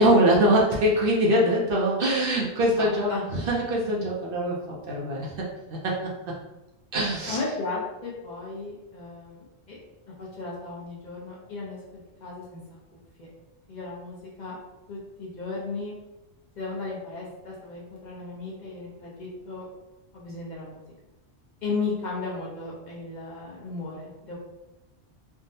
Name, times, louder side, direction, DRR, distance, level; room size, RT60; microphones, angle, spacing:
voice 1, 0.0-6.1 6.9-7.4, equal, 60° right, -3 dB, 0.7 m, -23 dB
voice 2, 2.8-3.2 7.3-9.8 10.2-12.6 13.2-13.3 13.7-14.6 14.9-15.9 16.6-19.7 20.1-20.8 21.6-24.4, left 3 dB, 50° left, -4 dB, 0.7 m, -35 dB
3.4 x 2.0 x 2.6 m, 1.0 s
omnidirectional pair, 1.1 m